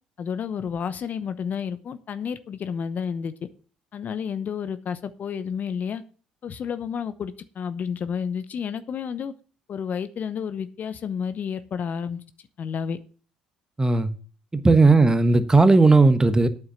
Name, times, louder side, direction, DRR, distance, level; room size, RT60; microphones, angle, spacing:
voice 1, 0.2-3.3 3.9-6.0 6.4-9.3 9.7-12.2 12.6-13.0 14.9-15.0, left 7 dB, 50° left, 0.9 m, -30 dB
voice 2, 13.8-14.1 14.5-16.5, right 3 dB, 15° right, 1.3 m, -16 dB
8.9 x 7.1 x 7.2 m
hypercardioid pair, 60°, 4 cm